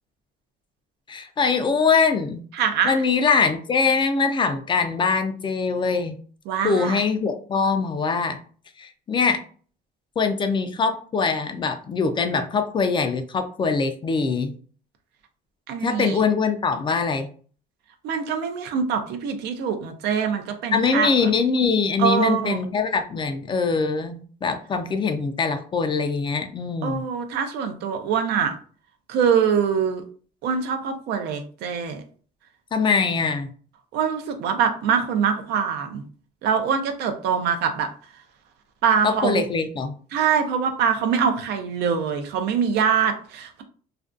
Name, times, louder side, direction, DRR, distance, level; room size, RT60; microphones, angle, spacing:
voice 1, 1.1-2.4 2.8-6.1 6.6-8.4 8.8-9.4 10.2-14.5 15.8-17.3 20.7-27.0 32.7-33.5 39.0-39.9, left 5 dB, 30° left, 8 dB, 0.4 m, -23 dB
voice 2, 2.5-3.0 6.5-7.0 15.7-16.2 18.0-21.3 22.0-22.6 26.8-28.5 29.1-30.0 30.4-32.0 33.9-36.0 36.4-37.9 38.8-39.4 40.1-43.6, right 7 dB, 80° right, 6 dB, 0.5 m, -24 dB
2.5 x 2.2 x 2.4 m, 0.43 s
cardioid pair, 110°, 17 cm